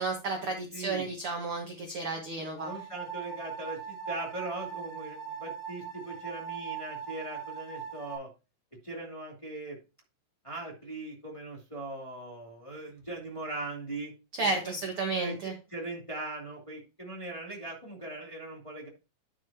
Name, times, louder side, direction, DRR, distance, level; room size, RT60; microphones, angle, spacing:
voice 1, 0.0-2.7 14.4-15.5, right 3 dB, 55° right, 2 dB, 1.6 m, -32 dB
voice 2, 0.7-1.1 2.4-8.3 8.8-9.8 10.4-14.1 14.6-14.8 15.1-18.9, right 2 dB, 10° left, -2 dB, 2.0 m, -40 dB
sound 1, 2.6-8.2, right 7 dB, 70° left, 6.0 m, -40 dB
10.5 x 7.4 x 2.8 m, 0.29 s
omnidirectional pair, 4.2 m